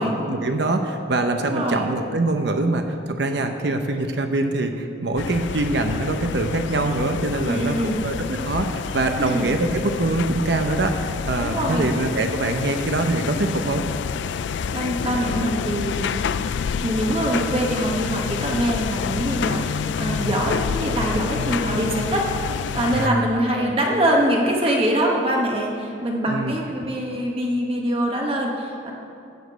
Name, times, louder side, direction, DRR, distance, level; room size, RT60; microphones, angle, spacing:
voice 1, 0.0-13.8 22.9-23.2 23.6-23.8 26.3-26.5, right 2 dB, 65° right, 5 dB, 0.7 m, -24 dB
voice 2, 1.4-1.9 7.4-8.0 9.2-9.5 11.4-11.9 14.4-16.2 16.6-28.9, right 1 dB, 30° right, -1 dB, 1.2 m, -24 dB
sound 1, 5.2-23.1, left 6 dB, 70° left, 0.3 m, -28 dB
14.5 x 5.2 x 7.9 m, 2.6 s
head